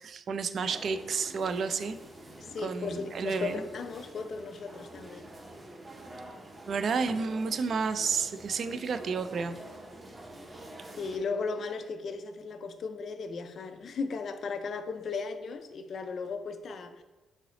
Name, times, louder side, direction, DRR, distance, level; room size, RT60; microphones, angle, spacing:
voice 1, 0.0-2.0 2.6-3.6 6.7-9.6, right 5 dB, 55° right, 0.3 m, -31 dB
sound 1, 0.5-11.2, right 1 dB, 20° right, 0.7 m, -47 dB
voice 2, 2.4-5.3 11.0-17.0, left 4 dB, 55° left, 0.4 m, -36 dB
3.8 x 3.2 x 3.8 m
cardioid pair, 115°, 0 cm